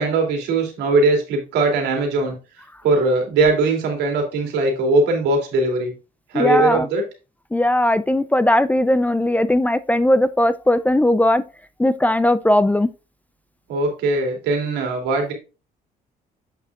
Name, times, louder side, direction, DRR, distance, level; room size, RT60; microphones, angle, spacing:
voice 1, 0.0-2.4 2.8-5.9 6.3-7.0 13.7-15.3, right 3 dB, 85° right, 3.0 m, -20 dB
voice 2, 6.3-6.9 7.5-11.4 11.8-12.9, left 1 dB, 10° left, 0.4 m, -18 dB
8.1 x 6.2 x 2.5 m
cardioid pair, 110°, 17 cm